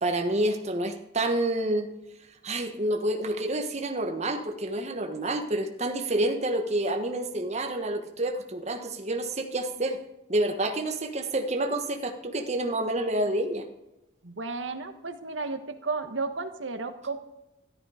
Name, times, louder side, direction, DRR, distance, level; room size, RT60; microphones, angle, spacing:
voice 1, 0.0-1.9 2.4-10.0 10.3-13.7, right 1 dB, 35° right, 5 dB, 1.4 m, -28 dB
voice 2, 14.2-17.2, right 3 dB, 90° right, 8 dB, 1.3 m, -33 dB
13.5 x 12.5 x 5.0 m, 0.92 s
head